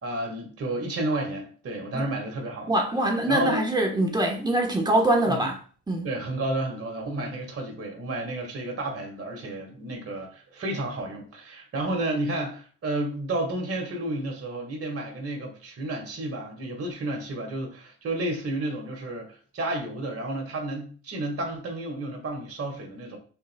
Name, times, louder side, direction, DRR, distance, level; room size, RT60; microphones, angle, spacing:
voice 1, 0.0-2.8 3.3-3.6 5.3-5.5 6.0-23.2, right 1 dB, 50° right, 1.8 m, -31 dB
voice 2, 2.7-5.6 5.9-6.1, right 1 dB, 15° right, 1.2 m, -23 dB
5.6 x 4.1 x 2.2 m
cardioid pair, 90°, 30 cm